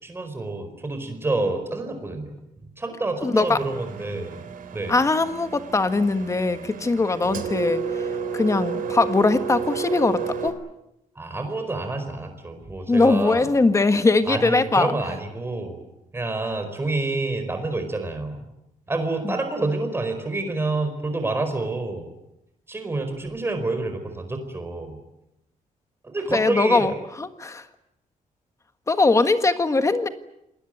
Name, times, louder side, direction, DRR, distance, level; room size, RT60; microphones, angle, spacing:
voice 1, 0.0-2.4 2.8-4.4 4.7-5.0 11.1-13.5 14.3-15.8 16.1-18.4 18.9-22.1 22.7-25.0 26.0-26.9, right 2 dB, 15° right, 7 dB, 4.7 m, -28 dB
voice 2, 3.2-3.6 4.9-8.1 8.3-10.6 12.9-15.2 19.2-19.4 26.3-27.6 28.9-30.1, left 3 dB, 20° left, 9 dB, 1.5 m, -21 dB
Engine, 3.3-10.5, right 6 dB, 75° right, 3.6 m, -31 dB
27.5 x 20.5 x 9.2 m, 0.86 s
wide cardioid pair, 175°, 14 cm